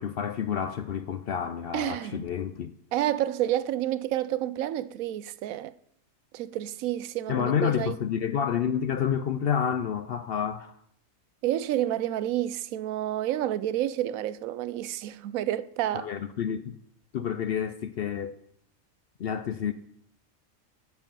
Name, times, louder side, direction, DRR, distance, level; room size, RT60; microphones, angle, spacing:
voice 1, 0.0-2.7 7.3-10.8 15.9-16.7 17.1-18.4 19.2-19.7, left 8 dB, 60° left, 0.6 m, -29 dB
voice 2, 1.7-2.2 2.9-5.7 6.3-8.0 11.4-16.1, right 12 dB, 85° right, 1.0 m, -29 dB
9.3 x 7.7 x 5.4 m
omnidirectional pair, 1.4 m